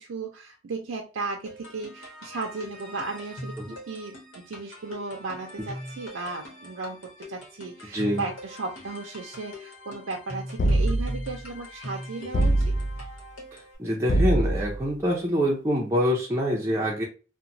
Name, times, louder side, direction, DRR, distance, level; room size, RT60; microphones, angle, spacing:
voice 1, 0.0-7.0 7.3-12.7, right 3 dB, 85° right, 1 dB, 0.5 m, -35 dB
sound 1, 1.5-13.8, left 1 dB, 75° left, 1.0 m, -42 dB
sound 2, 10.6-11.3 12.3-13.1 14.1-14.8, right 1 dB, 40° left, 0.4 m, -23 dB
voice 2, 13.8-17.0, equal, 15° right, -4 dB, 0.5 m, -25 dB
2.9 x 2.1 x 2.6 m, 0.34 s
head